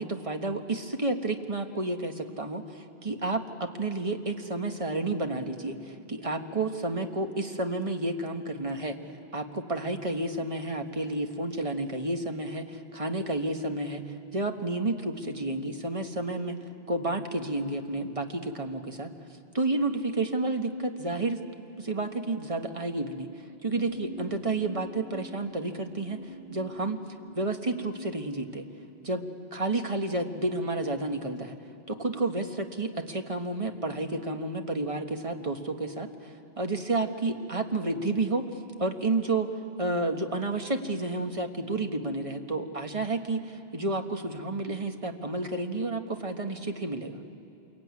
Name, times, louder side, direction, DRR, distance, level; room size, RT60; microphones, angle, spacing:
voice 1, 0.0-9.0 9.3-14.0 14.3-16.6 16.9-19.1 19.5-21.4 21.8-23.3 23.6-27.0 27.3-28.7 29.0-31.6 31.9-38.5 38.8-39.5 39.8-47.2, right 2 dB, 30° right, 5 dB, 1.5 m, -31 dB
sound 1, 23.8-29.1, left 1 dB, 50° left, 1.2 m, -47 dB
27.0 x 23.0 x 9.7 m, 2.8 s
omnidirectional pair, 1.1 m